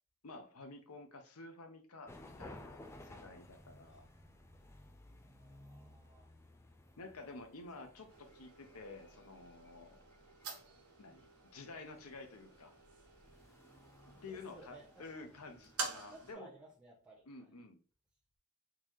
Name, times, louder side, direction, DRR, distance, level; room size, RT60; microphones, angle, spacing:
voice 1, 0.2-4.0 7.0-10.0 11.0-12.8 14.1-16.5 17.3-17.8, left 3 dB, 75° left, 7 dB, 0.7 m, -51 dB
sound 1, 2.1-16.3, left 1 dB, 10° left, 0.4 m, -58 dB
sound 2, 3.3-6.0, right 1 dB, 50° right, 0.8 m, -69 dB
voice 2, 3.8-4.2 5.2-6.4 7.9-8.0 14.1-15.4 16.1-17.5, right 2 dB, 5° right, -8 dB, 0.8 m, -59 dB
sound 3, 8.1-16.3, right 4 dB, 80° right, 1.0 m, -49 dB
3.8 x 2.7 x 3.1 m, 0.39 s
head